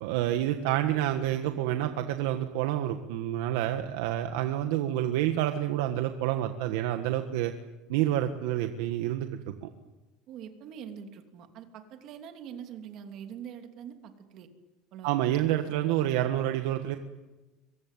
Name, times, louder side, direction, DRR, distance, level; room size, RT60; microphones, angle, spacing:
voice 1, 0.0-7.5 7.9-9.7 15.0-17.0, right 12 dB, 85° right, 7 dB, 1.5 m, -28 dB
voice 2, 10.3-14.5 14.9-15.2, right 8 dB, 45° right, 6 dB, 2.9 m, -44 dB
24.0 x 23.0 x 9.2 m, 1.1 s
cardioid pair, 165°, 0 cm